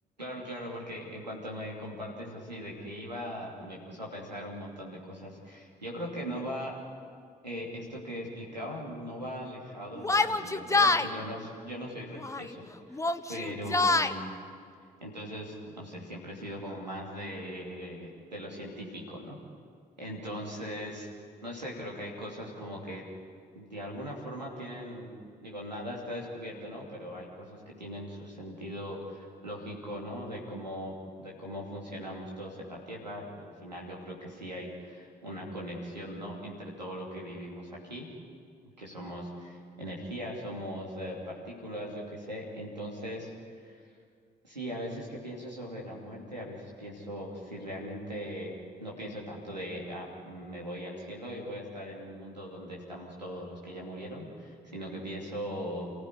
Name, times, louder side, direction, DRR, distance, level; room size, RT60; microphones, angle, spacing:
voice 1, 0.2-6.8 7.4-13.0 13.3-14.3 15.0-19.4 20.0-21.1 21.4-23.0 23.5-25.1 25.4-38.1 38.8-43.3 43.6-43.8 44.4-55.9, equal, 90° right, -2 dB, 2.9 m, -40 dB
Yell, 10.0-11.1 12.1-12.5 12.9-14.1, left 3 dB, 15° left, 1.2 m, -26 dB
29.0 x 15.5 x 9.9 m, 2.2 s
figure-of-eight pair, 40°, 21 cm